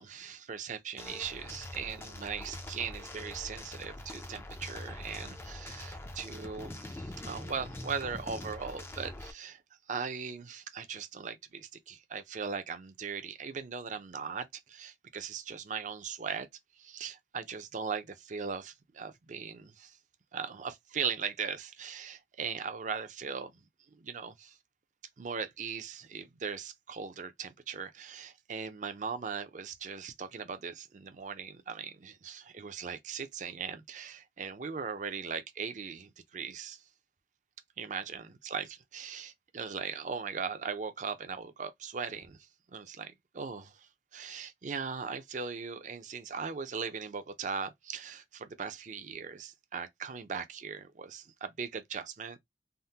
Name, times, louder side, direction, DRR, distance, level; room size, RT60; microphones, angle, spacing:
voice 1, 0.0-9.6 9.9-16.5 16.8-20.0 20.3-23.5 23.9-24.5 25.2-36.8 37.8-42.4 42.7-43.9 44.1-52.4, right 6 dB, 45° right, 0.5 m, -39 dB
sound 1, 1.0-9.3, left 1 dB, 15° left, 0.4 m, -44 dB
3.5 x 2.1 x 2.7 m
head